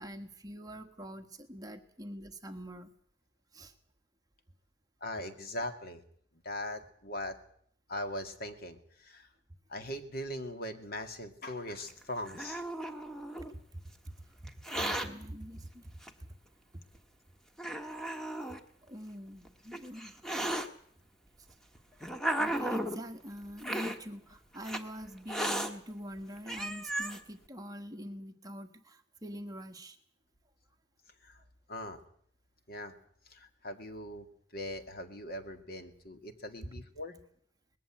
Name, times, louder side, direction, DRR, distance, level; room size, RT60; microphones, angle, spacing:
voice 1, 0.0-2.9 3.5-3.7 13.7-14.1 14.7-15.8 18.8-20.2 22.4-30.0, equal, 20° right, 6 dB, 1.4 m, -44 dB
voice 2, 5.0-6.0 6.4-7.4 7.9-9.3 9.7-12.6 31.2-31.4 31.7-32.0 32.7-32.9 33.3-34.3 34.5-37.2, left 1 dB, 55° left, 8 dB, 2.1 m, -40 dB
Hiss, 11.9-13.5 14.5-15.1 16.0-16.1 16.9-17.0 17.6-18.6 19.5-20.7 21.5-23.0 23.6-24.0 24.6-24.8 25.3-25.7 26.2-26.3 26.5-27.2, right 1 dB, 5° left, 1.4 m, -35 dB
20.0 x 15.0 x 9.2 m, 0.62 s
head